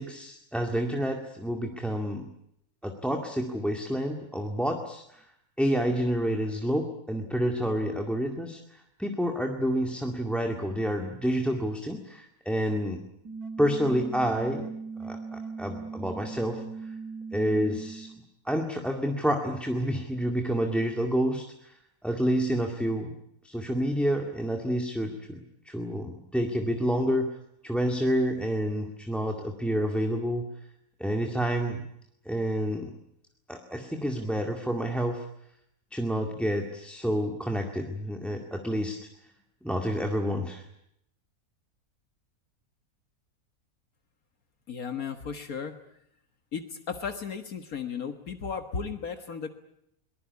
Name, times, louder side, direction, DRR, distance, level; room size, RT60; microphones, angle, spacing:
voice 1, 0.0-2.3 2.8-5.2 5.6-13.0 13.6-14.7 15.0-16.6 17.3-18.1 18.5-21.7 22.0-23.1 23.4-27.3 27.6-30.4 31.0-31.8 32.3-32.9 33.5-35.3 35.9-39.0 39.6-40.7, equal, ahead, 3 dB, 2.0 m, -29 dB
sound 1, 13.2-18.2, right 4 dB, 80° right, 2.7 m, -39 dB
voice 2, 44.7-45.8 46.5-49.5, left 6 dB, 70° left, 7 dB, 2.0 m, -35 dB
23.0 x 20.5 x 9.6 m, 0.75 s
omnidirectional pair, 1.6 m